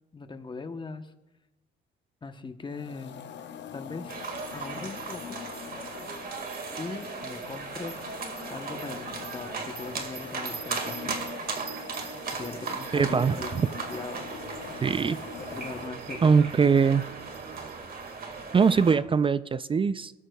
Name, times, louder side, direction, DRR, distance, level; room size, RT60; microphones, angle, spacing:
voice 1, 0.1-1.1 2.2-3.2 3.7-4.2 4.5-5.4 6.8-8.0 8.5-11.3 12.4-13.5 13.9-14.2 15.4-16.4, left 4 dB, 25° left, 8 dB, 0.9 m, -40 dB
sound 1, 2.7-15.9, left 7 dB, 65° left, 0.9 m, -43 dB
sound 2, 4.1-19.0, right 4 dB, 50° right, 1.9 m, -37 dB
sound 3, 10.5-17.7, right 8 dB, 65° right, 0.7 m, -48 dB
voice 2, 12.9-13.7 14.8-15.2 16.2-17.1 18.5-20.1, right 5 dB, 25° right, 16 dB, 0.4 m, -22 dB
21.0 x 12.5 x 2.3 m, 1.0 s
cardioid pair, 90°, 20 cm